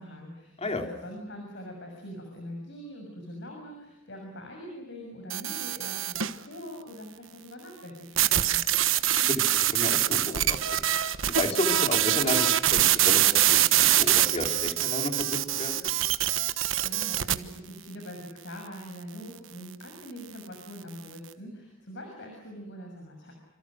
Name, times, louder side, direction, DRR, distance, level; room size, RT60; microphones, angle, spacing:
voice 1, 0.0-8.6 16.5-23.3, equal, 60° left, 2 dB, 6.8 m, -43 dB
sound 1, 5.3-6.4 8.2-17.3, right 12 dB, 70° right, 1.3 m, -24 dB
voice 2, 9.1-10.6 11.1-15.8, left 2 dB, 30° left, 4 dB, 3.7 m, -32 dB
27.0 x 27.0 x 6.4 m, 0.96 s
head